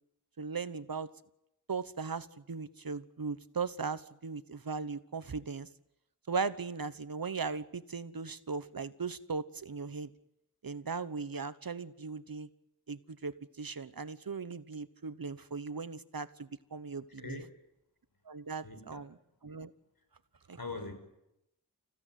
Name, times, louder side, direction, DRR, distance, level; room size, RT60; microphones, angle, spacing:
voice 1, 0.4-1.1 1.7-5.7 6.3-10.1 10.6-12.5 12.9-17.4 18.3-19.1 19.4-19.7 20.5-20.6, right 5 dB, 65° right, 14 dB, 1.1 m, -38 dB
voice 2, 17.2-17.5 18.6-19.0 20.6-20.9, left 3 dB, 70° left, 6 dB, 5.2 m, -41 dB
27.5 x 16.0 x 9.3 m, 0.85 s
wide cardioid pair, 60°, 37 cm